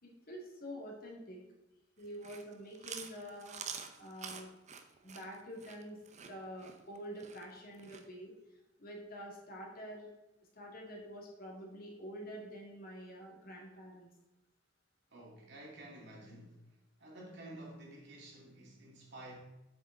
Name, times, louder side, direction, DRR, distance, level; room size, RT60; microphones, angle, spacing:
voice 1, 0.0-1.4 2.0-3.6 4.0-4.5 5.0-6.0 6.3-8.3 8.8-10.1 10.5-14.1, equal, 50° left, 2.1 m, -47 dB
Chewing mastication, 2.0-8.0, right 7 dB, 35° right, 0.7 m, -47 dB
voice 2, 15.1-16.6 17.0-19.4, right 1 dB, 60° right, 2.3 m, -51 dB
7.6 x 6.1 x 3.8 m
head